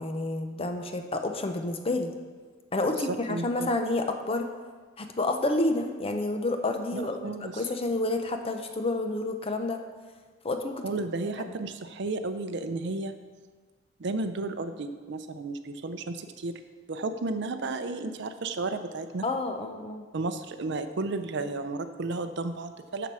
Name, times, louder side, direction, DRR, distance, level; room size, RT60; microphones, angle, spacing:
voice 1, 0.0-2.1 2.7-4.5 5.0-9.8 10.4-10.8 11.4-11.5 19.2-20.1, left 2 dB, 30° left, 6 dB, 0.7 m, -29 dB
voice 2, 2.9-3.7 6.9-7.7 10.8-13.1 14.0-16.6 16.9-19.3 20.1-23.1, right 3 dB, 65° right, 9 dB, 0.6 m, -33 dB
7.3 x 6.9 x 6.1 m, 1.5 s
head